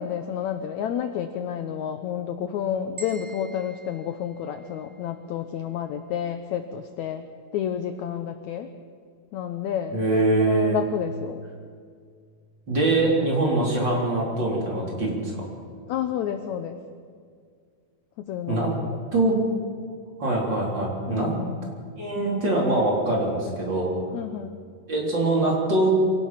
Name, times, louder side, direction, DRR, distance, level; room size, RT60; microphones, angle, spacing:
voice 1, 0.0-7.2 7.5-8.7 9.3-11.4 15.9-16.8 18.2-19.0 21.1-21.7 24.1-24.6, left 9 dB, 80° left, 8 dB, 1.7 m, -30 dB
sound 1, 3.0-5.2, right 3 dB, 5° right, 3.4 m, -45 dB
voice 2, 9.9-10.8 12.7-15.4 18.5-18.7 19.1-19.4 20.2-21.3 22.0-23.9 24.9-26.0, right 2 dB, 30° right, -2 dB, 4.1 m, -23 dB
25.5 x 18.0 x 5.9 m, 2.1 s
omnidirectional pair, 4.2 m